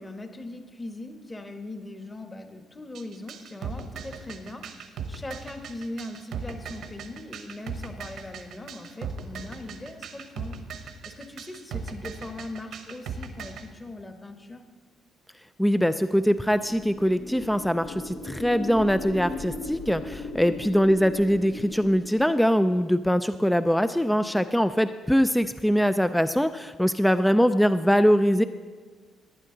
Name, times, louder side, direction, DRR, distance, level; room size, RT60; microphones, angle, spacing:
voice 1, 0.0-10.6 11.0-14.6 20.5-20.8, left 2 dB, 20° left, 6 dB, 1.2 m, -40 dB
sound 1, 2.9-13.6, right 6 dB, 80° right, 1.1 m, -38 dB
voice 2, 15.6-28.4, equal, 5° left, 11 dB, 0.4 m, -22 dB
sound 2, 16.3-22.4, left 2 dB, 75° left, 1.3 m, -38 dB
18.5 x 8.9 x 3.9 m, 1.4 s
cardioid pair, 90°, 0 cm